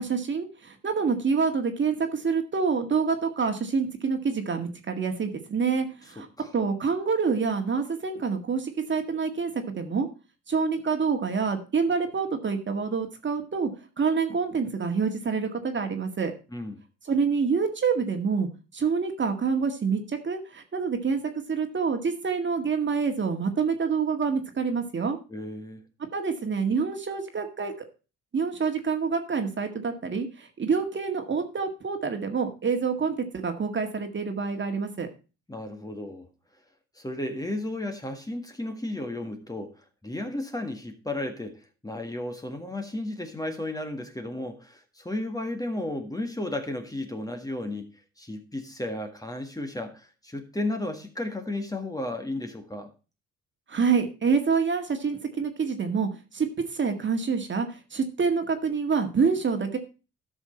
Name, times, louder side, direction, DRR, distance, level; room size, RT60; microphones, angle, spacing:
voice 1, 0.0-6.3 6.5-10.1 10.5-13.7 14.0-16.3 17.1-21.2 21.5-25.2 26.1-27.7 28.3-35.1 53.7-56.5 56.7-59.8, right 5 dB, 40° right, 1.8 m, -27 dB
voice 2, 6.2-6.5 16.5-16.8 25.3-25.8 35.5-36.3 37.0-39.7 40.0-47.9 48.2-52.9, left 1 dB, 10° left, 1.7 m, -33 dB
12.5 x 6.2 x 4.3 m
cardioid pair, 90°, 30 cm